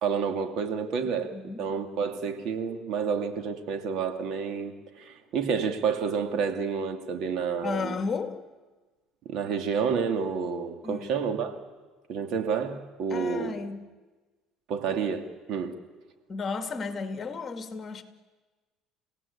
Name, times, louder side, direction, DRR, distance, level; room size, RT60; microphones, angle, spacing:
voice 1, 0.0-7.9 9.2-11.6 12.1-13.6 14.7-15.7, right 6 dB, 60° right, 7 dB, 2.5 m, -29 dB
voice 2, 1.3-1.6 7.6-8.4 10.8-11.1 13.1-13.8 16.3-18.0, left 4 dB, 30° left, 8 dB, 2.3 m, -33 dB
30.0 x 17.5 x 8.7 m, 1.3 s
cardioid pair, 110°, 0 cm